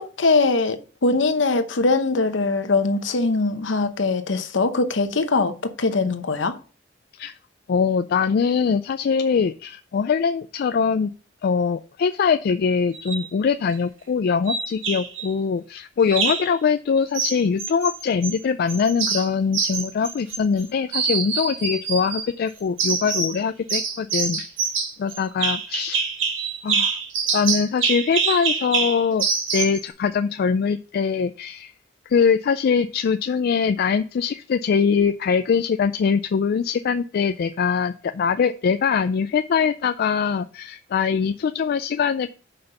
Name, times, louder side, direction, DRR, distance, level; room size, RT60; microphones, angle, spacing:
voice 1, 0.0-6.6, left 3 dB, 70° left, 0.8 m, -22 dB
voice 2, 7.7-11.1 11.4-24.5 25.0-26.0 26.6-27.0 27.3-29.3 29.5-31.7 32.1-42.3, left 6 dB, 55° left, 0.3 m, -22 dB
sound 1, 12.9-13.3 14.5-15.3 16.1-16.5 17.1-18.4 18.7-20.6 20.9-22.3 22.8-23.4 23.7-29.8, right 5 dB, 85° right, 1.6 m, -25 dB
5.9 x 5.2 x 5.3 m
head